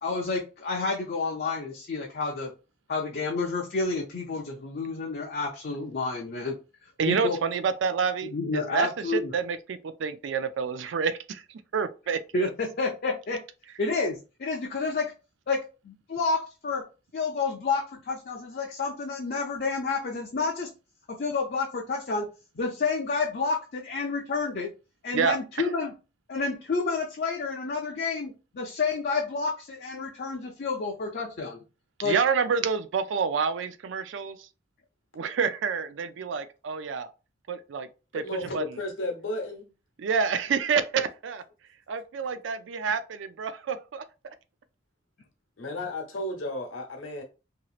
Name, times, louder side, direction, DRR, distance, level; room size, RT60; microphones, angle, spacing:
voice 1, 0.0-2.5 2.9-6.6 7.1-7.4 8.3-9.3 12.3-13.4 13.8-15.1 15.5-16.8 17.1-20.7 21.1-22.3 22.6-24.7 25.0-25.9 26.3-31.6 32.0-32.2 38.4-38.5, left 4 dB, 50° left, 0.5 m, -30 dB
voice 2, 7.0-11.4 11.7-12.5 25.1-25.7 32.0-34.5 35.1-37.1 37.5-37.9 38.1-38.2 38.5-38.6 40.0-41.4 41.9-44.0, right 5 dB, 65° right, 0.4 m, -28 dB
voice 3, 38.1-39.7 45.6-47.2, left 1 dB, 80° left, 1.0 m, -33 dB
2.9 x 2.8 x 2.4 m
head